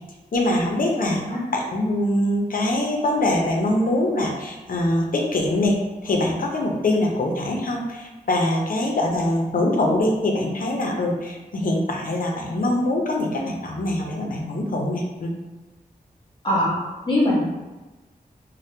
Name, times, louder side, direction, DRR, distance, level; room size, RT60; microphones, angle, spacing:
voice 1, 0.3-1.2 1.5-15.3, left 1 dB, 65° left, 0 dB, 0.6 m, -23 dB
voice 2, 1.1-1.4 16.4-16.8 17.0-17.4, left 1 dB, 30° left, -6 dB, 1.3 m, -21 dB
2.8 x 2.1 x 3.3 m, 1.2 s
wide cardioid pair, 90°, 16 cm